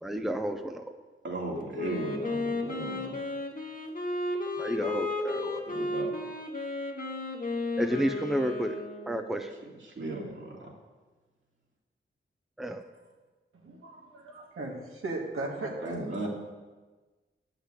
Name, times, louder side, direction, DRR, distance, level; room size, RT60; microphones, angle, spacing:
voice 1, 0.0-0.8 4.6-5.7 7.8-9.5 12.6-12.9, right 1 dB, ahead, 6 dB, 0.7 m, -31 dB
voice 2, 1.2-3.2 5.7-6.2 9.8-10.7 15.8-16.3, right 2 dB, 65° right, -2 dB, 2.7 m, -36 dB
Wind instrument woodwind instrument, 1.7-9.5, left 2 dB, 40° left, 1.4 m, -34 dB
voice 3, 13.5-16.3, right 2 dB, 90° right, -1 dB, 1.9 m, -37 dB
10.0 x 5.9 x 8.4 m, 1.3 s
wide cardioid pair, 80°, 21 cm